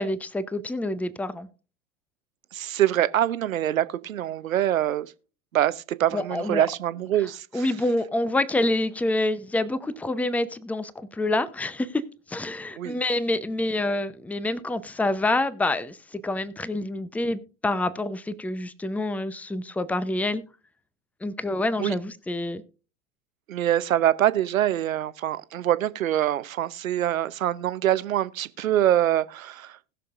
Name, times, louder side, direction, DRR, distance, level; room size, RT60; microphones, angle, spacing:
voice 1, 0.0-1.5 6.1-6.7 7.5-12.0 12.3-20.4 21.2-22.6, left 2 dB, 5° left, 0.7 m, -27 dB
voice 2, 2.5-5.1 5.5-7.7 12.8-13.0 21.8-21.9 23.5-29.8, right 12 dB, 80° right, 0.8 m, -24 dB
20.0 x 6.9 x 2.5 m
hypercardioid pair, 85°, 40 cm